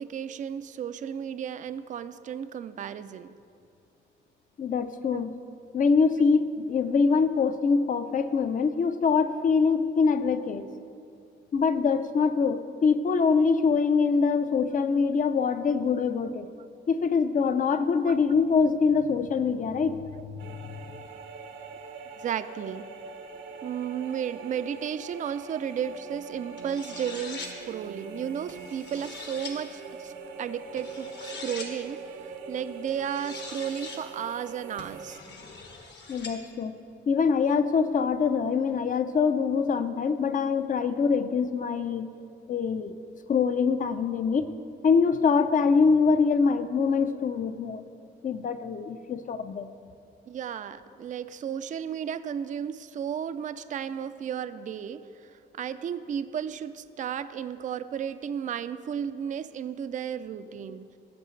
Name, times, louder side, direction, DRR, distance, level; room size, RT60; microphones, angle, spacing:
voice 1, 0.0-3.3 5.1-5.2 15.4-15.5 18.1-18.2 22.2-22.9 23.6-30.1 30.4-35.2 50.3-60.9, right 8 dB, 40° right, 12 dB, 0.4 m, -34 dB
voice 2, 4.6-5.3 5.7-10.7 11.5-16.5 16.9-20.6 36.1-36.8 37.1-42.1 42.5-42.9 43.3-44.5 44.8-47.8 48.2-49.7, left 5 dB, 40° left, 11 dB, 0.6 m, -24 dB
sound 1, 20.4-35.2, right 4 dB, 75° right, 0.9 m, -42 dB
sound 2, 26.6-27.5 28.5-29.5 30.8-31.7 32.9-34.0 34.8-36.3, left 4 dB, 60° left, 1.4 m, -42 dB
16.5 x 6.6 x 3.2 m, 2.6 s
cardioid pair, 90°, 20 cm